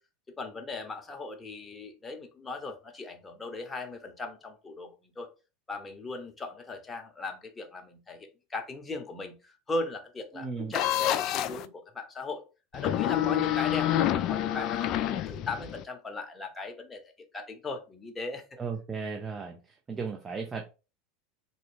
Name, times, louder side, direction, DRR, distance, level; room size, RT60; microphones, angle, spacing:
voice 1, 0.4-5.3 5.7-12.4 12.7-17.0 17.3-18.4, left 3 dB, 20° left, 5 dB, 0.9 m, -38 dB
voice 2, 10.3-10.7 18.6-20.6, right 5 dB, 25° right, 2 dB, 0.6 m, -36 dB
sound 1, 10.7-11.7 12.7-15.8, left 12 dB, 50° left, 0.3 m, -28 dB
3.8 x 2.2 x 3.6 m, 0.32 s
hypercardioid pair, 85°, 0 cm